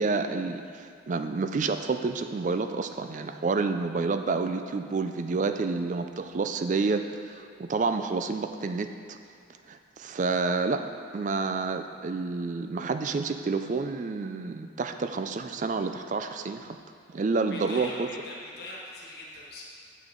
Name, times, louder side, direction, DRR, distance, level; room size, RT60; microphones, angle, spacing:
voice 1, 0.0-9.2 9.7-10.8 11.1-16.8 17.1-18.1, right 4 dB, 40° right, 8 dB, 0.3 m, -29 dB
voice 2, 17.5-19.6, left 2 dB, 55° left, -4 dB, 1.4 m, -41 dB
8.8 x 6.3 x 3.8 m, 2.3 s
head